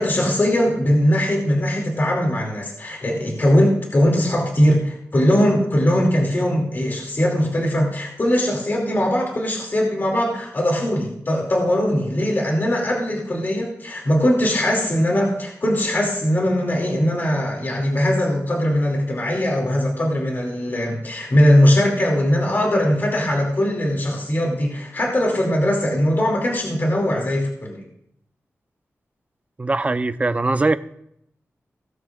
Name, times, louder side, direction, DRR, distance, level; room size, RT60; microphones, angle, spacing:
voice 1, 0.0-27.8, equal, 45° left, -1 dB, 2.6 m, -20 dB
voice 2, 29.6-30.8, right 2 dB, 30° right, 10 dB, 0.6 m, -21 dB
17.5 x 14.0 x 2.5 m, 0.75 s
wide cardioid pair, 105°, 5 cm